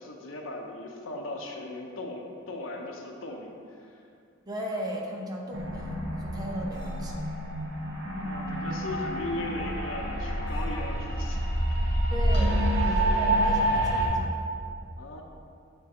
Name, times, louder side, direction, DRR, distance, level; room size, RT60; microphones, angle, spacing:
voice 1, 0.0-4.0 8.1-11.4 11.8-12.1 15.0-15.2, left 2 dB, 75° left, 1 dB, 0.8 m, -38 dB
voice 2, 4.5-7.2 12.1-14.4, equal, 20° right, -1 dB, 0.7 m, -36 dB
sound 1, 5.5-14.1, right 1 dB, 65° right, 1.0 m, -27 dB
7.8 x 3.7 x 4.3 m, 2.4 s
head